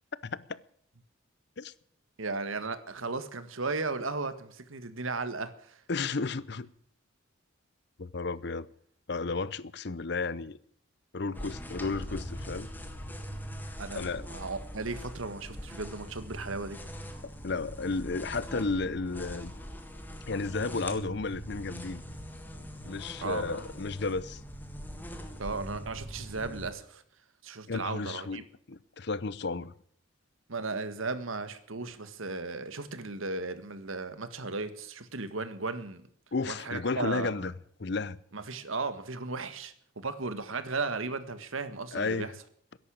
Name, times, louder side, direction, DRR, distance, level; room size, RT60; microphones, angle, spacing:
voice 1, 0.2-0.6 1.6-1.7 5.9-6.7 8.0-8.7 9.1-10.6 11.1-12.7 13.9-14.2 17.4-19.5 20.2-22.0 22.9-24.4 27.7-29.7 36.3-37.5 37.8-38.2 41.9-42.3, left 3 dB, 55° left, 0.7 m, -33 dB
voice 2, 2.2-5.8 13.8-16.8 23.2-23.6 25.4-27.0 27.4-28.4 30.5-36.1 36.5-37.4 38.3-42.3, right 3 dB, 80° right, 1.6 m, -36 dB
sound 1, 11.3-26.7, equal, 10° left, 1.6 m, -42 dB
13.5 x 11.0 x 8.9 m
head